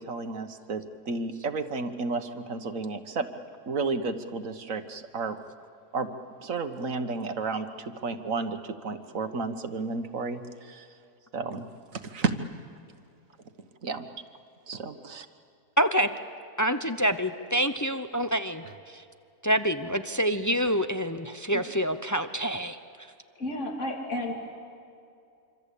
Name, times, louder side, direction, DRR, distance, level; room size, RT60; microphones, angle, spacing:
voice 1, 0.0-3.3 3.7-5.4 5.9-6.1 6.4-10.9 11.3-12.3 13.8-14.1 14.7-15.3, right 4 dB, 55° right, 9 dB, 1.6 m, -32 dB
voice 2, 15.8-16.1 16.6-19.0 19.4-22.8, equal, 25° left, 9 dB, 0.4 m, -27 dB
voice 3, 23.3-24.3, left 1 dB, 45° left, 2 dB, 3.3 m, -32 dB
26.0 x 26.0 x 8.4 m, 2.5 s
omnidirectional pair, 1.7 m